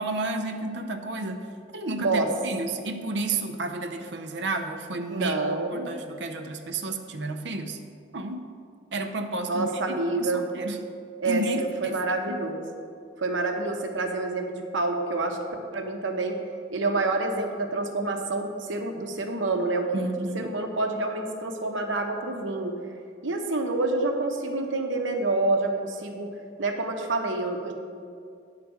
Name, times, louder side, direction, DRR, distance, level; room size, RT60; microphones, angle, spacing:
voice 1, 0.0-5.4 5.7-7.8 8.1-8.5 8.9-10.8 11.2-12.0 12.3-12.4 19.9-20.5, right 2 dB, 70° right, 5 dB, 0.7 m, -31 dB
voice 2, 5.1-5.9 9.5-10.5 11.2-12.6 13.2-15.4 15.7-16.4 16.7-19.9 20.3-22.8 23.2-26.3 26.6-27.7, right 2 dB, 85° right, 3 dB, 1.0 m, -27 dB
9.3 x 4.9 x 7.0 m, 2.3 s
head